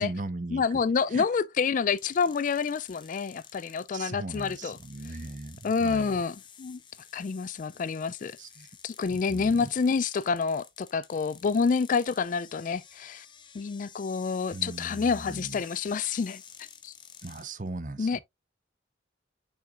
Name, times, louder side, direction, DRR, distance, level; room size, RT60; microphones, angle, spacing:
voice 1, 0.0-0.8 1.1-1.2 3.9-6.2 8.4-8.7 9.1-9.7 14.5-15.6 17.2-18.2, right 2 dB, 40° right, 0.8 m, -38 dB
voice 2, 0.5-4.8 5.6-6.8 7.1-8.3 8.8-13.3 13.5-16.4 16.8-16.9 18.0-18.2, left 5 dB, 40° left, 0.3 m, -28 dB
sound 1, 2.0-17.5, left 7 dB, 25° left, 0.7 m, -51 dB
6.8 x 5.8 x 2.4 m
head